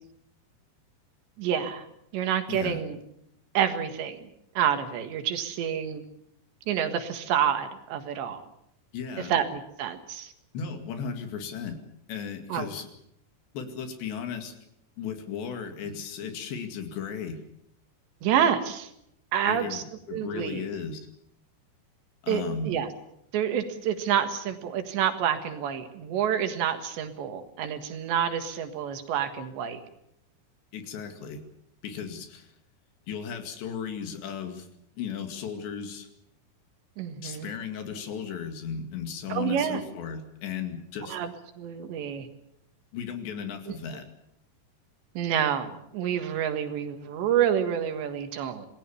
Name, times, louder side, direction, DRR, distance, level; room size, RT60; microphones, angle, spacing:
voice 1, 1.4-1.9 2.1-3.0 3.6-4.3 4.6-6.0 6.7-8.5 9.2-10.3 12.5-12.7 18.2-18.9 19.3-19.8 20.1-20.7 22.3-22.9 23.3-29.8 37.0-37.5 39.3-39.8 41.1-42.3 43.7-43.8 45.2-48.7, right 9 dB, 75° right, 8 dB, 3.9 m, -28 dB
voice 2, 2.5-2.8 8.9-9.3 10.5-11.8 12.1-12.9 13.5-14.5 15.0-17.4 19.5-21.0 22.2-22.8 30.7-31.4 31.8-32.5 33.1-34.7 35.0-36.1 37.2-41.2 42.9-44.1, left 7 dB, 70° left, 6 dB, 4.4 m, -35 dB
26.5 x 19.0 x 7.1 m, 0.77 s
omnidirectional pair, 5.2 m